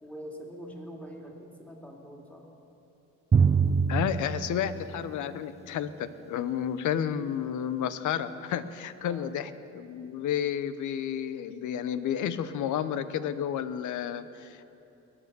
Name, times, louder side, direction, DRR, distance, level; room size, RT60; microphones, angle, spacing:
voice 1, 0.0-2.4 9.0-9.3, equal, 5° left, -1 dB, 2.7 m, -44 dB
Drum, 3.3-5.7, right 5 dB, 20° right, 0.5 m, -26 dB
voice 2, 3.9-14.7, left 9 dB, 75° left, 13 dB, 0.8 m, -31 dB
22.0 x 8.8 x 6.9 m, 2.9 s
cardioid pair, 90°, 30 cm